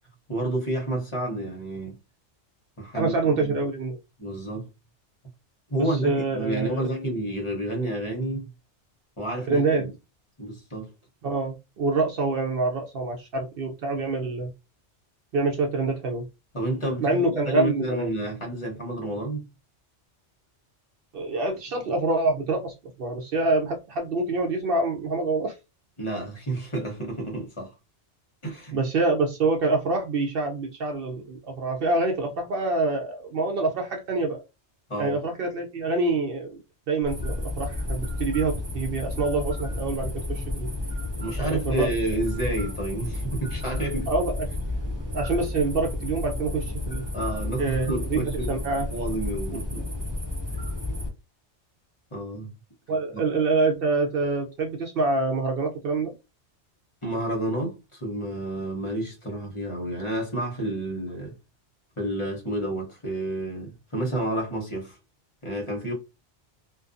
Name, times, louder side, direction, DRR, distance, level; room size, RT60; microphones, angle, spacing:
voice 1, 0.3-2.0 2.8-3.6 4.2-4.7 5.7-8.5 9.2-9.9 10.4-10.9 16.5-19.4 26.0-27.7 28.4-28.8 34.9-35.2 41.2-44.1 47.1-48.5 48.9-49.9 52.1-52.5 53.1-53.2 57.0-61.3 62.0-65.0 65.4-65.9, right 1 dB, 30° left, 0.8 m, -30 dB
voice 2, 3.0-4.0 5.8-6.9 9.5-9.9 11.2-14.5 15.3-16.2 17.0-18.1 21.1-25.5 28.7-34.4 35.0-36.6 36.9-40.7 41.4-41.9 44.1-44.5 45.1-47.0 47.6-48.9 49.5-49.6 52.9-56.1, right 3 dB, 60° right, 0.7 m, -26 dB
sound 1, 37.0-51.1, left 2 dB, 20° right, 1.2 m, -31 dB
2.5 x 2.2 x 2.4 m
omnidirectional pair, 1.2 m